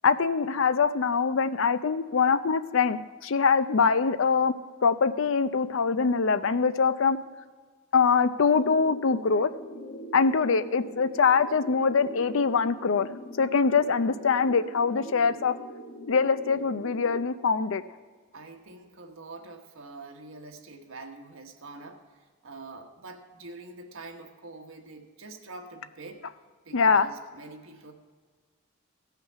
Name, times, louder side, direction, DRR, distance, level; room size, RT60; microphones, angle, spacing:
voice 1, 0.0-4.5 4.8-7.2 7.9-9.5 10.1-13.1 13.4-15.5 16.1-17.8 26.7-27.1, left 5 dB, 65° left, 13 dB, 0.5 m, -23 dB
sound 1, 8.5-17.2, equal, 85° left, 1.6 m, -42 dB
voice 2, 18.3-26.3 26.6-27.9, right 2 dB, 70° right, 3 dB, 1.3 m, -45 dB
16.5 x 5.8 x 5.8 m, 1.5 s
head